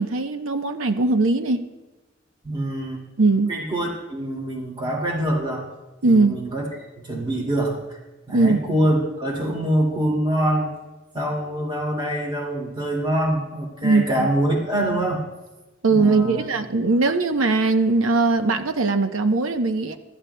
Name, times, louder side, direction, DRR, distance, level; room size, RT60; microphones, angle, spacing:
voice 1, 0.0-1.6 3.2-3.5 6.0-6.4 8.3-8.6 13.8-14.3 15.8-20.0, right 3 dB, 85° right, 7 dB, 0.8 m, -20 dB
voice 2, 2.4-3.0 3.5-5.6 6.0-6.7 7.0-8.0 8.3-10.7 11.1-15.2 15.9-16.5, right 1 dB, 25° right, -1 dB, 2.3 m, -24 dB
25.0 x 12.5 x 2.2 m, 1.1 s
head